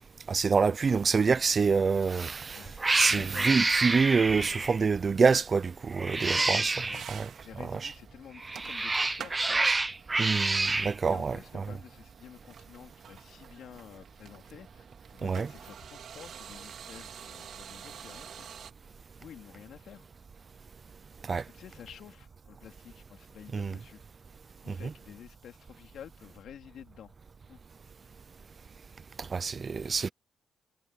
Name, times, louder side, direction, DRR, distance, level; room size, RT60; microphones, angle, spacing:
voice 1, 0.3-2.6 2.9-6.7 7.1-7.3 10.2-11.4 15.2-15.5 21.3-21.4 23.5-23.7 24.7-24.8 29.2-30.1, right 5 dB, 35° right, 0.6 m, -26 dB
sound 1, 1.1-18.7, right 8 dB, 65° right, 3.8 m, -50 dB
Cat, 2.1-2.4 2.8-4.8 5.9-7.0 8.4-10.9, right 3 dB, 20° right, 0.9 m, -28 dB
voice 2, 2.5-3.6 6.1-6.5 6.9-7.1 7.4-9.7 11.0-14.8 15.1-18.5 19.2-20.1 21.3-24.0 24.6-27.1 27.5-27.6, left 9 dB, 70° left, 3.2 m, -50 dB
cardioid pair, 115°, 0 cm